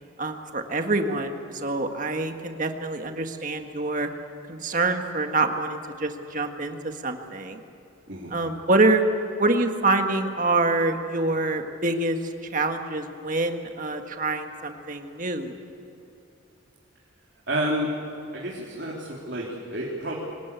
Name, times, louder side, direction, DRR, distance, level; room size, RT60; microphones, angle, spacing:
voice 1, 0.2-4.1 4.5-7.6 8.3-9.0 9.4-15.6, right 2 dB, 40° right, 5 dB, 1.7 m, -26 dB
voice 2, 17.5-17.9 18.3-20.1, right 1 dB, 55° right, -4 dB, 3.6 m, -30 dB
24.5 x 19.5 x 8.4 m, 2.8 s
head